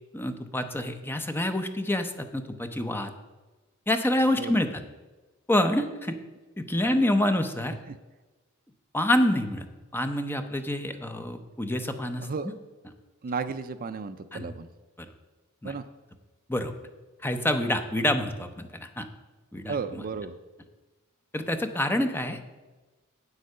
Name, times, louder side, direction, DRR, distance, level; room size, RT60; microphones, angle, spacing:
voice 1, 0.1-3.1 3.9-4.8 5.5-6.2 6.6-7.8 8.9-9.6 9.9-12.5 14.3-14.5 15.6-15.7 16.5-16.7 17.2-19.1 19.5-19.7 21.3-22.5, left 1 dB, 10° left, 7 dB, 0.7 m, -27 dB
voice 2, 4.4-4.7 6.8-7.0 7.8-8.0 12.2-12.5 13.2-14.7 15.6-15.9 19.7-20.4, right 5 dB, 40° right, 12 dB, 0.4 m, -34 dB
8.5 x 8.1 x 6.6 m, 1.2 s
head